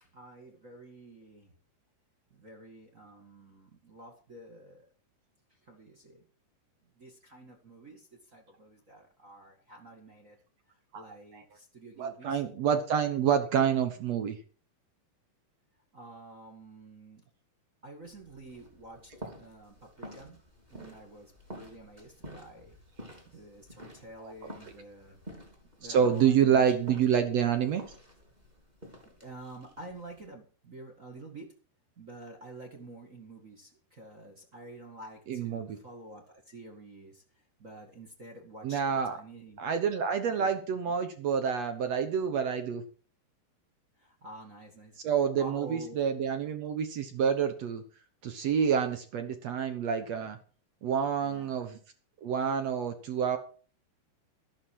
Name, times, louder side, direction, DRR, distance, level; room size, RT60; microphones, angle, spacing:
voice 1, 0.0-1.5 2.3-4.9 5.6-6.2 7.0-10.4 10.7-12.4 15.9-17.2 17.8-19.1 19.4-20.4 20.7-22.8 23.3-25.2 25.8-26.9 29.0-31.6 32.0-37.2 37.6-39.6 40.3-40.5 44.0-45.0 45.4-46.0 51.2-51.6, right 2 dB, 35° right, 4 dB, 1.3 m, -49 dB
voice 2, 12.0-14.4 24.2-24.3 25.9-27.8 35.3-35.8 38.6-39.2 39.6-42.8 45.0-47.8 48.2-50.4 50.8-51.8 52.2-53.4, right 7 dB, 70° right, 8 dB, 1.6 m, -28 dB
sound 1, 18.0-30.3, equal, 10° right, 3.2 m, -50 dB
13.0 x 11.5 x 4.8 m, 0.39 s
omnidirectional pair, 4.7 m